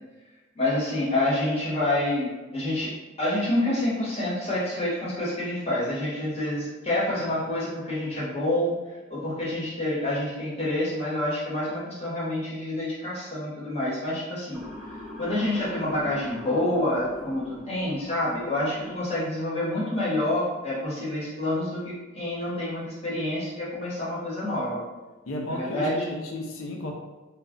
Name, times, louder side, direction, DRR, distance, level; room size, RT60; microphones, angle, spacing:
voice 1, 0.5-8.7 9.1-14.6 15.2-24.8 25.5-26.1, left 1 dB, 30° left, -8 dB, 1.0 m, -28 dB
Motor vehicle (road) / Siren, 14.5-18.7, left 1 dB, 5° right, 0.4 m, -41 dB
voice 2, 25.3-26.9, left 1 dB, 75° left, 1 dB, 0.5 m, -33 dB
2.3 x 2.2 x 3.6 m, 1.2 s
head